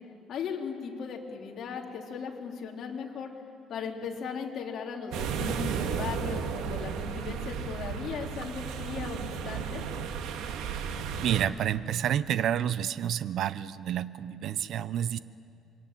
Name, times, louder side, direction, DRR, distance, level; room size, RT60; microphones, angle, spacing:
voice 1, 0.3-3.3 3.7-9.8, left 6 dB, 50° left, 0 dB, 3.5 m, -37 dB
sound 1, 5.1-11.5, right 6 dB, 80° right, 1.9 m, -34 dB
voice 2, 11.2-15.2, right 10 dB, 55° right, 15 dB, 0.7 m, -29 dB
27.5 x 24.0 x 9.0 m, 2.5 s
cardioid pair, 150°, 0 cm